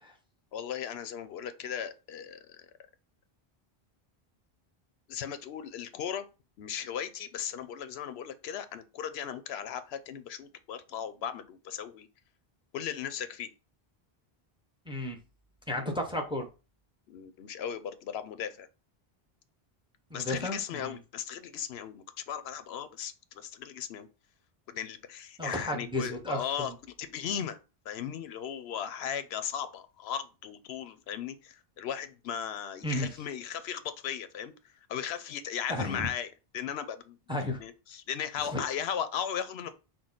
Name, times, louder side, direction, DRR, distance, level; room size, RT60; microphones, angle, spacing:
voice 1, 0.5-2.6 5.1-6.3 6.6-12.1 12.7-13.5 17.1-18.7 20.1-24.1 24.7-27.6 27.9-34.5 34.9-37.2 37.6-39.7, left 8 dB, 90° left, 0.8 m, -37 dB
voice 2, 14.9-15.2 15.7-16.5 20.1-21.0 25.4-26.7 32.8-33.1 35.7-36.1 37.3-37.6 38.5-38.6, left 1 dB, 5° right, 0.7 m, -33 dB
6.0 x 2.2 x 3.8 m
omnidirectional pair, 1.0 m